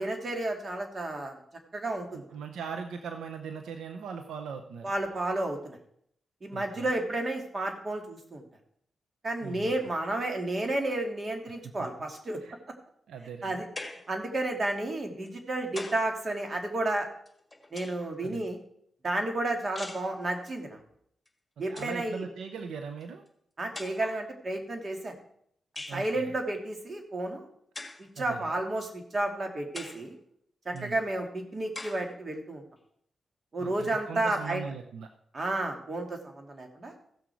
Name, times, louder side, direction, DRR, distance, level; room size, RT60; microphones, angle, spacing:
voice 1, 0.0-1.3 1.7-2.2 4.8-5.8 6.4-8.4 9.2-12.4 13.4-13.7 14.1-17.1 17.7-18.6 19.0-20.8 21.6-22.2 23.6-25.2 25.9-27.5 28.2-30.2 30.7-32.6 33.5-34.6 35.3-36.9, right 2 dB, 45° right, 3 dB, 2.3 m, -31 dB
voice 2, 2.1-4.9 6.5-6.9 9.4-9.7 11.6-11.9 12.4-12.6 13.1-13.6 18.2-18.5 21.7-23.2 25.9-26.3 28.2-28.5 30.7-31.0 33.6-35.1, right 6 dB, 85° right, 6 dB, 0.7 m, -40 dB
sound 1, 13.8-14.2 15.3-16.1 17.3-18.2 19.8-20.1 21.3-21.4 21.6-22.0 23.0-23.1 23.7-24.3 25.8-26.1 27.7-28.1 28.8-28.9 29.7-30.1 30.8-30.9 31.7-32.1, left 2 dB, 20° left, 1.8 m, -42 dB
15.5 x 6.3 x 4.6 m, 0.69 s
supercardioid pair, 50°, 0 cm